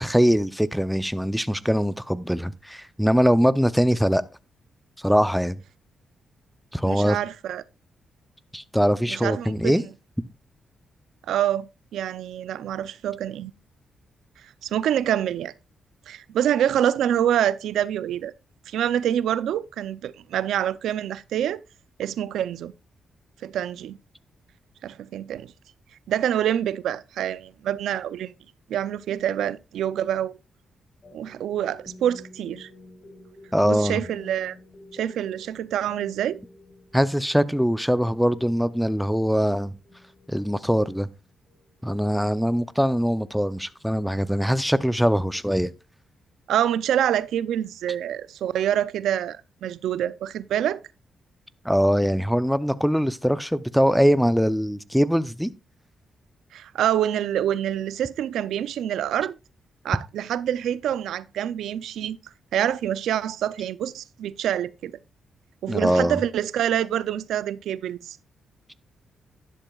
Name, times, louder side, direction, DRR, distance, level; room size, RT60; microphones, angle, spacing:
voice 1, 0.0-4.2 5.0-5.6 6.7-7.2 8.5-9.8 33.5-34.0 36.9-39.7 40.3-41.1 41.8-45.7 51.6-55.5 65.7-66.2, equal, ahead, 0.5 m, -22 dB
voice 2, 6.9-7.6 9.1-9.8 11.3-13.5 14.6-15.5 16.1-18.3 18.7-21.6 22.0-22.7 23.4-24.0 24.8-25.5 26.1-28.3 28.7-30.3 31.1-32.7 33.7-34.6 34.9-36.4 46.5-50.8 56.5-59.4 59.8-62.2 62.5-65.0 65.6-68.2, right 10 dB, 90° right, 0.4 m, -26 dB
sound 1, 31.0-44.5, left 2 dB, 30° left, 4.5 m, -51 dB
11.5 x 11.0 x 2.3 m
cardioid pair, 100°, 0 cm